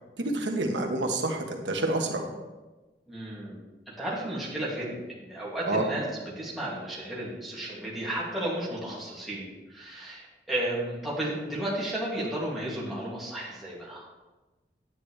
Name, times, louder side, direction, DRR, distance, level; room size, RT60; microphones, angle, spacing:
voice 1, 0.2-2.3 5.7-5.8, right 2 dB, 90° right, 2 dB, 1.3 m, -28 dB
voice 2, 3.1-3.6 3.9-6.0 6.4-14.1, right 1 dB, ahead, -7 dB, 2.4 m, -33 dB
10.0 x 9.2 x 3.3 m, 1.2 s
head